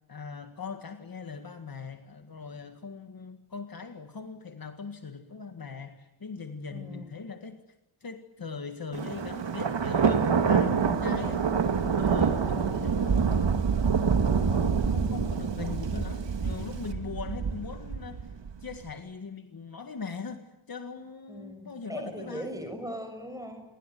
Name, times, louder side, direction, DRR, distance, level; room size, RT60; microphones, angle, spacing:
voice 1, 0.1-7.6 8.0-11.4 12.0-13.5 14.0-18.2 18.6-22.5, left 5 dB, 45° left, 7 dB, 1.9 m, -40 dB
voice 2, 6.7-7.3 21.3-23.6, right 1 dB, 5° right, 6 dB, 6.7 m, -39 dB
Thunder, 8.9-18.8, right 6 dB, 60° right, 2.3 m, -26 dB
28.5 x 22.5 x 9.3 m, 0.88 s
wide cardioid pair, 150°, 48 cm